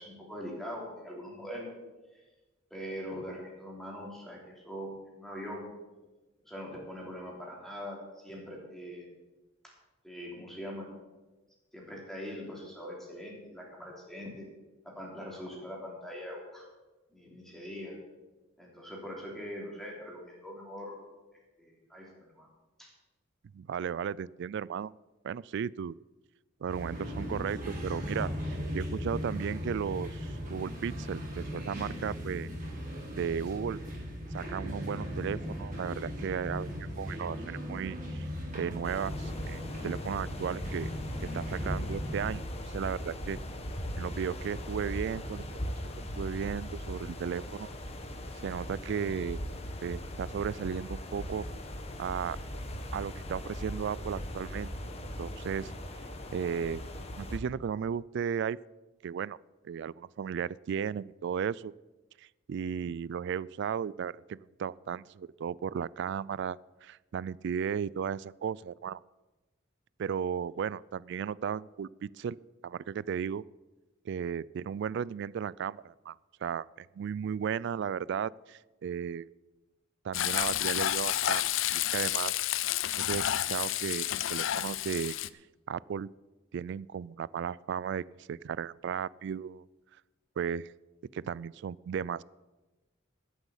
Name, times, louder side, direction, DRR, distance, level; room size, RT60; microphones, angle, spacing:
voice 1, 0.0-1.7 2.1-2.2 2.7-5.6 6.4-8.0 8.2-9.1 10.0-10.9 11.7-14.5 14.8-16.6 17.1-18.0 18.6-21.0 21.6-22.5 22.8-22.9, equal, ahead, -3 dB, 3.4 m, -42 dB
voice 2, 23.5-24.9 25.2-26.0 26.6-32.5 33.1-33.8 34.3-38.3 38.5-40.9 41.3-43.4 44.0-45.4 45.8-47.7 48.4-49.4 49.8-51.5 52.0-52.4 52.9-54.9 55.2-55.7 56.3-56.8 57.2-58.6 59.0-59.4 59.6-61.7 62.2-69.0 70.0-72.4 72.6-73.4 74.1-76.2 76.4-79.3 80.0-82.6 82.9-85.2 85.7-86.1 86.5-89.7 90.4-90.7 91.1-92.2, right 7 dB, 60° right, 23 dB, 0.3 m, -35 dB
sound 1, 26.7-42.2, equal, 40° right, 4.4 m, -38 dB
sound 2, 38.8-57.4, equal, 30° left, 1.3 m, -39 dB
Frying (food), 80.1-85.3, left 13 dB, 70° left, 0.4 m, -30 dB
13.0 x 8.0 x 7.2 m, 1.1 s
head